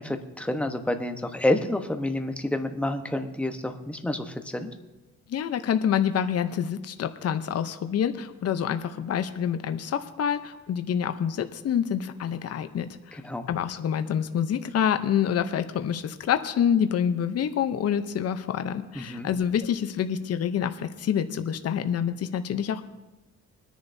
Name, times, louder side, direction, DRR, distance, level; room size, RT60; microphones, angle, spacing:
voice 1, 0.0-4.7 13.1-13.5 18.9-19.3, left 1 dB, 5° left, 6 dB, 1.1 m, -29 dB
voice 2, 5.3-13.2 13.5-22.8, left 8 dB, 55° left, 9 dB, 0.8 m, -27 dB
21.5 x 10.5 x 2.8 m, 1.1 s
cardioid pair, 90°, 30 cm